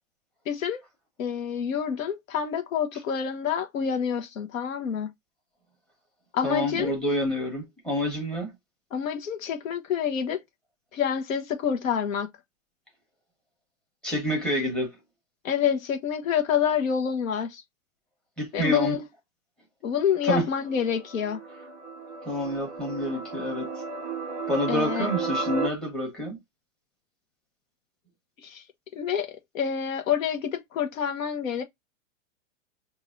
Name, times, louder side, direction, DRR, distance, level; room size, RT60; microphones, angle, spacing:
voice 1, 0.5-0.8 1.2-5.1 6.3-6.9 8.9-10.4 10.9-12.3 15.4-17.6 18.5-19.0 19.8-21.4 24.7-25.1 28.4-28.6 28.9-31.6, left 8 dB, 80° left, 1.1 m, -27 dB
voice 2, 6.4-8.5 14.0-15.0 18.4-19.0 20.2-20.5 22.2-23.7 24.5-26.4, equal, ahead, 1.4 m, -28 dB
sound 1, 20.1-25.7, right 4 dB, 15° right, 0.3 m, -34 dB
5.0 x 2.7 x 2.5 m
supercardioid pair, 155°, 39 cm